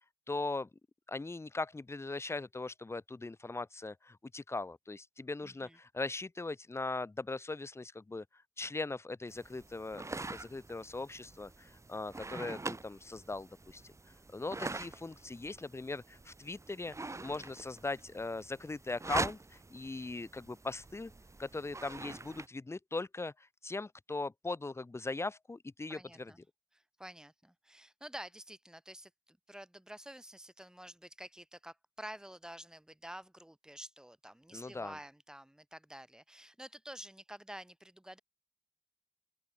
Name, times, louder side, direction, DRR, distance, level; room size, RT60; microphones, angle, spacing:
voice 1, 0.3-0.7 1.1-8.2 8.6-13.8 14.3-16.9 17.2-21.1 21.4-26.3 34.5-35.0, left 3 dB, 30° left, 1.7 m, -40 dB
voice 2, 5.4-5.8 25.9-26.4 26.7-38.2, right 1 dB, 10° right, 3.9 m, -49 dB
sound 1, 9.3-22.5, right 3 dB, 35° right, 3.8 m, -44 dB
open air
cardioid pair, 70°, 9 cm